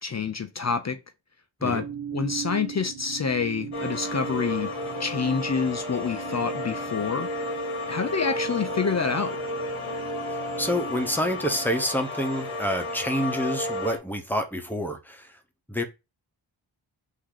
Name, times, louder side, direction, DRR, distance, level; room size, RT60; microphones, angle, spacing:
voice 1, 0.0-1.0 1.6-1.8 2.1-4.7 5.0-7.3 7.9-9.4, left 5 dB, 35° left, 0.5 m, -27 dB
sound 1, 1.7-11.7, right 8 dB, 50° right, 0.8 m, -39 dB
sound 2, 3.7-14.0, left 2 dB, 85° left, 1.2 m, -32 dB
voice 2, 10.3-15.4 15.7-15.8, equal, 5° left, 0.9 m, -28 dB
3.7 x 2.8 x 4.8 m
wide cardioid pair, 90°, 49 cm